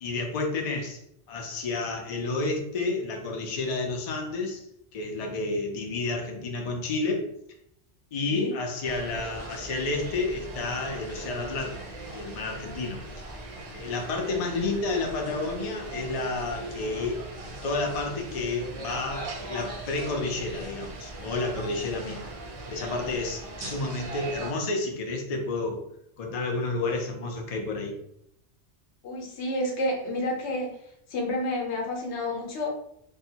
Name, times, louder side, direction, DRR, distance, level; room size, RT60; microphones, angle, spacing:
voice 1, 0.0-1.0 1.3-4.7 4.9-7.3 8.1-11.8 12.1-13.0 13.7-17.2 17.6-22.3 22.7-25.8 26.2-28.0, left 3 dB, 50° left, 2 dB, 0.4 m, -30 dB
sound 1, 8.8-24.5, right 2 dB, 50° right, 0.4 m, -40 dB
voice 2, 29.0-30.7 31.1-32.7, left 1 dB, 85° left, 0 dB, 1.0 m, -29 dB
2.6 x 2.2 x 2.7 m, 0.74 s
omnidirectional pair, 1.1 m